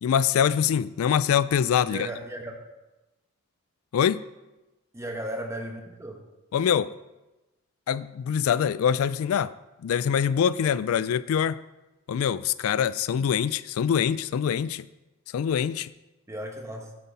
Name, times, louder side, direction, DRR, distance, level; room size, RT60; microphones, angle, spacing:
voice 1, 0.0-2.1 3.9-4.2 6.5-6.9 7.9-9.5 9.8-11.6 12.1-14.9 15.3-15.9, left 8 dB, 80° left, 17 dB, 0.3 m, -24 dB
voice 2, 1.8-2.6 4.9-6.2 16.3-16.9, right 1 dB, 15° right, 3 dB, 1.1 m, -35 dB
9.4 x 8.4 x 4.1 m, 1.0 s
head